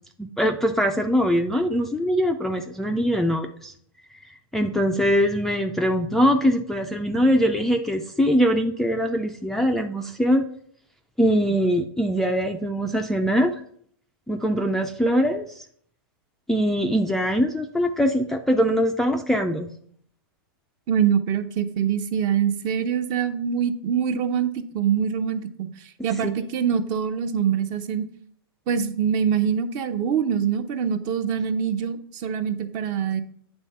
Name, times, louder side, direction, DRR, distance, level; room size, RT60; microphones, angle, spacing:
voice 1, 0.2-3.7 4.1-10.4 11.2-13.5 14.3-15.7 16.5-19.7 26.2-26.4, equal, 5° left, 3 dB, 0.3 m, -22 dB
voice 2, 20.9-25.7 26.0-28.1 28.7-33.2, right 8 dB, 35° right, 11 dB, 0.7 m, -24 dB
9.0 x 3.6 x 5.5 m, 0.63 s
hypercardioid pair, 140°, 13 cm